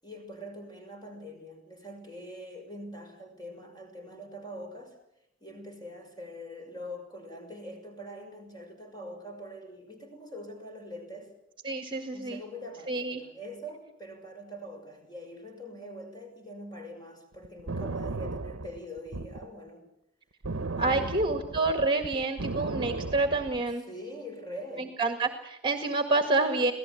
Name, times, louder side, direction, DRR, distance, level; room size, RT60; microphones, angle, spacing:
voice 1, 0.0-5.0 5.4-11.3 12.1-19.8 20.8-21.1 23.9-24.9, equal, 20° left, 3 dB, 6.2 m, -43 dB
voice 2, 11.6-12.4 12.9-13.2 20.8-23.8 24.8-26.7, right 3 dB, 25° right, 7 dB, 1.9 m, -28 dB
sound 1, 17.4-19.5 20.4-23.7, right 3 dB, 75° right, 1.0 m, -35 dB
27.0 x 17.5 x 8.6 m, 0.81 s
head